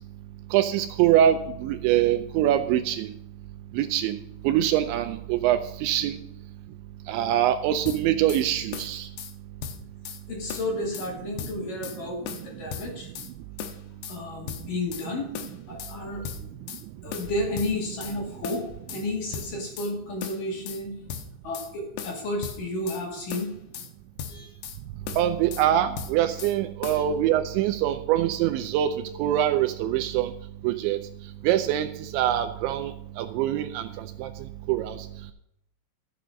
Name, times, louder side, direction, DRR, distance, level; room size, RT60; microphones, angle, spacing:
voice 1, 0.5-3.1 3.8-4.2 4.4-6.2 7.1-9.1 25.2-28.9 29.2-30.3 30.6-31.0 31.4-34.3 34.7-35.0, right 11 dB, 85° right, 8 dB, 2.8 m, -24 dB
sound 1, 7.9-8.4 8.7-9.3 9.6-10.2 10.5-11.1 11.4-12.0 12.3-13.3 13.6-14.2 14.5-15.1 15.3-16.0 16.2-16.8 17.1-18.2 18.4-19.0 19.3-19.9 20.2-20.8 21.1-21.7 22.0-23.0 23.3-23.9 24.2-24.8 25.1-25.7 26.0-26.6 26.8-27.0, left 8 dB, 75° left, 2.4 m, -37 dB
voice 2, 10.3-13.1 14.1-15.3 15.7-16.5 17.0-20.9 21.4-23.5 24.3-24.5 26.9-27.0, left 2 dB, 50° left, -1 dB, 3.7 m, -32 dB
13.5 x 7.7 x 5.2 m, 0.77 s
omnidirectional pair, 5.6 m